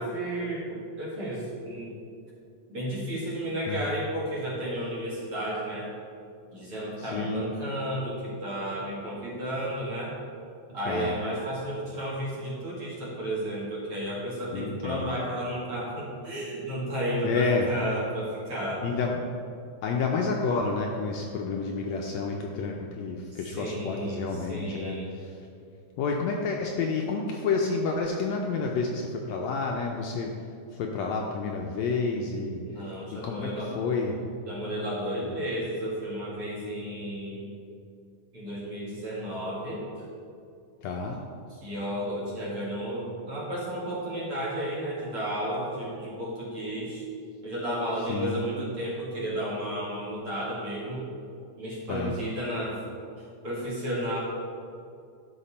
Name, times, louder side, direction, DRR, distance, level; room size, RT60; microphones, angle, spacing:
voice 1, 0.0-2.0 2.7-5.9 6.5-10.2 10.7-18.8 23.5-25.1 32.7-33.7 34.5-37.5 38.3-39.8 41.6-47.1 47.4-51.1 51.6-52.8 53.4-54.2, right 1 dB, 45° right, -7 dB, 2.9 m, -32 dB
voice 2, 7.0-7.5 10.9-11.1 14.5-15.2 17.2-17.7 18.8-19.2 19.8-25.4 26.0-32.6 33.1-34.2 35.2-35.3 40.8-41.2 48.1-48.4 51.9-52.1, left 4 dB, 75° left, 1 dB, 1.7 m, -30 dB
12.0 x 5.7 x 4.3 m, 2.4 s
omnidirectional pair, 3.6 m